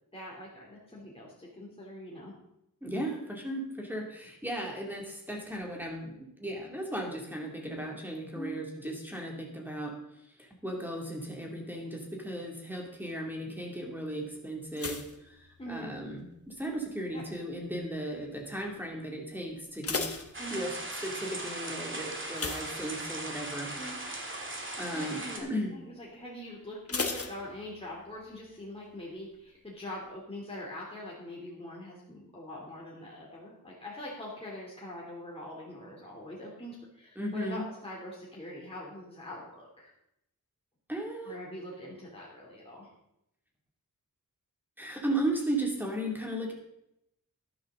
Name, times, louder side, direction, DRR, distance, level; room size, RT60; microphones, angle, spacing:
voice 1, 0.1-2.3 8.3-8.6 15.6-15.9 17.1-17.2 20.4-20.6 23.7-24.0 24.9-39.9 41.2-42.9, left 1 dB, 15° left, -5 dB, 3.1 m, -43 dB
voice 2, 2.8-9.9 10.4-20.1 20.5-23.7 24.8-25.7 37.2-37.6 40.9-41.4 44.8-46.5, right 1 dB, 5° right, 0 dB, 2.6 m, -36 dB
sound 1, 14.7-16.2 16.5-17.0 17.6-18.0 18.3-18.4 18.8-18.9 19.5-21.0 22.3-23.5 23.8-24.1 24.5-24.6 26.9-28.1 28.4-28.5, left 4 dB, 45° left, 1.3 m, -37 dB
sound 2, 20.3-25.4, right 2 dB, 35° right, 2.2 m, -38 dB
12.5 x 11.5 x 3.8 m, 0.81 s
wide cardioid pair, 100°, 33 cm